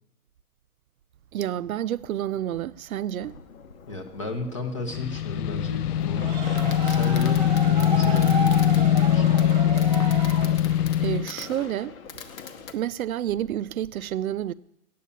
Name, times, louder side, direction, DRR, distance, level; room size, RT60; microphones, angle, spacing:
voice 1, 1.3-3.4 11.0-12.0 12.7-14.5, right 11 dB, 70° right, 0.5 m, -29 dB
Fireworks, 3.2-12.7, left 6 dB, 65° left, 1.1 m, -42 dB
voice 2, 3.9-9.4, left 2 dB, 20° left, 0.7 m, -34 dB
sound 1, 4.9-11.3, left 11 dB, 85° left, 0.5 m, -22 dB
sound 2, 6.0-11.0, right 5 dB, 10° right, 1.3 m, -33 dB
8.5 x 8.4 x 8.2 m
hypercardioid pair, 175°, 45 cm